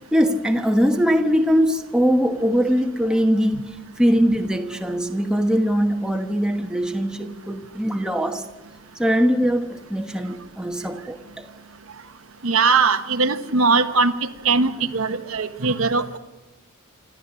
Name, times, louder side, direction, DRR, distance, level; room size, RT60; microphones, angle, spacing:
voice 1, 0.1-3.7 4.0-8.4 9.0-11.5, equal, 5° right, 1.1 m, -21 dB
voice 2, 12.4-14.1 14.4-16.2, right 4 dB, 70° right, 1.1 m, -20 dB
27.5 x 13.0 x 9.7 m
head